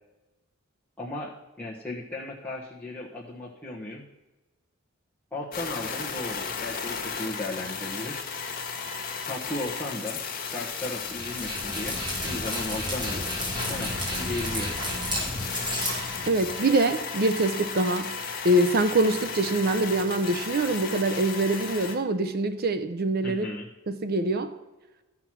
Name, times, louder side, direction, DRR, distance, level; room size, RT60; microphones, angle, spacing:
voice 1, 1.0-1.3 1.6-4.0 5.3-8.2 9.3-10.2 10.5-13.2 13.6-14.7 23.2-23.7, left 1 dB, 10° left, 1.2 m, -35 dB
sound 1, 5.5-22.0, left 5 dB, 45° left, 1.5 m, -35 dB
Dog, 10.9-16.7, equal, 25° right, 3.5 m, -33 dB
voice 2, 16.3-18.1 18.4-23.5 23.9-24.5, right 2 dB, 50° right, 0.6 m, -24 dB
13.0 x 5.9 x 6.1 m
head